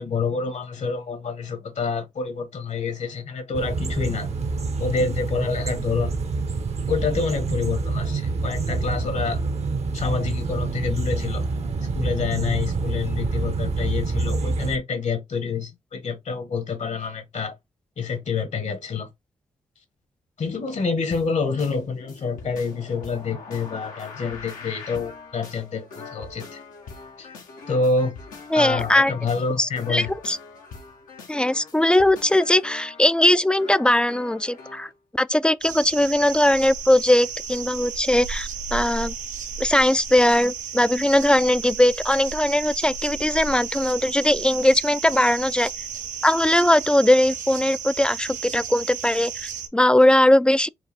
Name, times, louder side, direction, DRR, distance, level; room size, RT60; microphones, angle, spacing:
voice 1, 0.0-4.3 4.8-6.1 6.9-9.4 9.9-11.4 11.9-17.5 18.0-19.1 20.4-26.6 27.2-27.3 27.7-28.1 28.5-30.1, left 4 dB, 60° left, 1.3 m, -27 dB
sound 1, 3.5-14.8, right 3 dB, 55° right, 0.8 m, -27 dB
sound 2, 21.1-34.9, left 4 dB, 90° left, 1.0 m, -42 dB
voice 2, 28.5-29.1 29.6-30.4 31.3-39.1 39.6-45.7 46.2-50.7, left 1 dB, 5° left, 0.3 m, -20 dB
sound 3, 35.6-49.7, right 7 dB, 80° right, 0.7 m, -34 dB
4.6 x 2.3 x 3.5 m
supercardioid pair, 45°, 13 cm